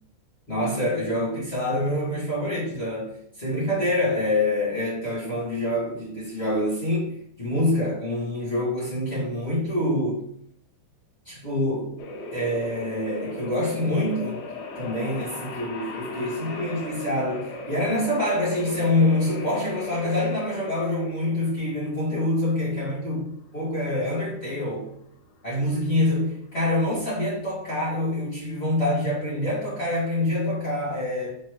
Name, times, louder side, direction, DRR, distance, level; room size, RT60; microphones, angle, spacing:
voice 1, 0.5-10.2 11.2-12.0 12.3-14.4 14.7-24.9 25.4-31.3, left 1 dB, 30° left, -9 dB, 1.1 m, -26 dB
sound 1, 12.0-26.5, left 2 dB, 75° left, 2.3 m, -38 dB
7.1 x 4.4 x 3.3 m, 0.69 s
omnidirectional pair, 5.6 m